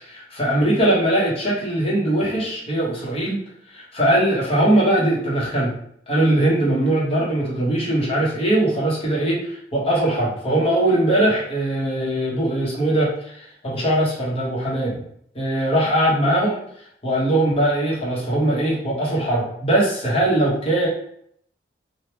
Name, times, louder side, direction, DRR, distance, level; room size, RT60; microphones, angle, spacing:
voice 1, 0.0-3.4 3.7-5.7 6.1-15.0 15.3-16.7 17.0-20.9, right 1 dB, 35° left, -5 dB, 1.1 m, -21 dB
3.3 x 2.4 x 2.9 m, 0.68 s
head